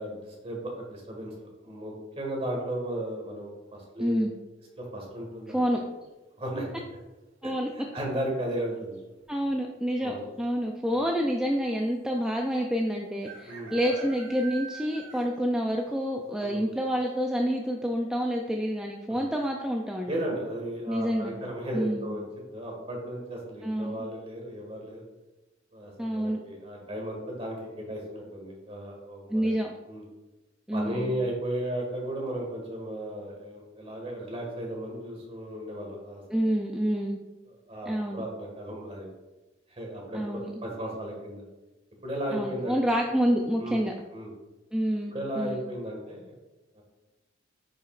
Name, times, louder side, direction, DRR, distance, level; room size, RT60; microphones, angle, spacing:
voice 1, 0.0-1.3 1.6-4.2 4.8-5.8 6.4-6.7 7.4-9.0 10.0-10.2 10.9-11.1 13.4-14.0 16.4-16.7 19.1-19.3 20.1-25.0 25.7-29.5 29.9-30.0 30.7-36.6 37.5-39.1 39.7-41.4 42.0-43.0 43.6-43.8 44.1-44.3 45.1-46.4 46.7-46.8, right 1 dB, 30° right, -1 dB, 1.7 m, -35 dB
voice 2, 4.0-4.3 5.5-5.8 7.4-7.7 9.3-20.2 20.9-21.3 21.7-22.1 23.6-24.1 26.0-26.4 29.3-29.7 30.7-31.1 36.3-37.2 37.9-38.2 40.1-40.5 42.3-43.9 44.7-45.6, equal, 5° right, 0 dB, 0.4 m, -28 dB
sound 1, 5.7-6.2 8.0-8.4 8.6-8.7 8.9-9.5 10.2-10.3 10.6-10.7 12.2-12.3 13.2-15.5 15.9-16.0 16.5-16.6 17.0-17.1, right 4 dB, 90° right, 1.4 m, -45 dB
9.0 x 5.1 x 2.5 m, 1.1 s
head